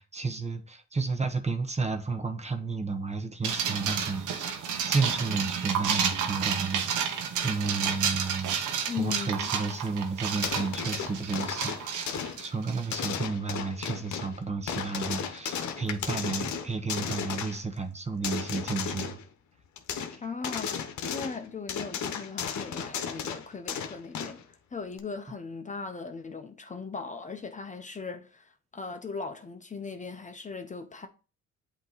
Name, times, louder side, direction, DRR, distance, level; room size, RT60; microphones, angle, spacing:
voice 1, 0.0-4.6 4.9-19.2 20.1-20.2, right 4 dB, 20° right, 0.9 m, -32 dB
sound 1, 3.4-13.0, right 7 dB, 80° right, 1.0 m, -31 dB
voice 2, 8.9-9.5 20.2-20.7 21.1-31.1, left 5 dB, 25° left, 0.7 m, -38 dB
sound 2, 10.4-12.4 12.9-14.4 14.7-17.6 18.2-19.2 19.8-20.2 20.4-21.4 21.7-24.4 25.0-25.1, left 7 dB, 70° left, 1.0 m, -34 dB
8.0 x 2.9 x 4.0 m
cardioid pair, 90°, 30 cm